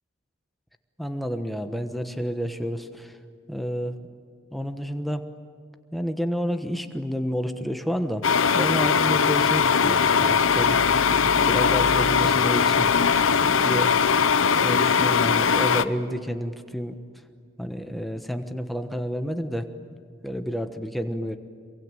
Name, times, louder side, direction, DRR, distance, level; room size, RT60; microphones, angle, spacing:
voice 1, 1.0-3.2 3.5-4.0 4.5-5.2 5.9-10.8 11.4-12.9 13.4-13.9 14.6-17.0 17.6-19.7 20.2-21.4, equal, ahead, 7 dB, 1.2 m, -30 dB
sound 1, 8.2-15.8, left 6 dB, 85° left, 0.8 m, -20 dB
26.5 x 23.0 x 9.1 m, 2.2 s
head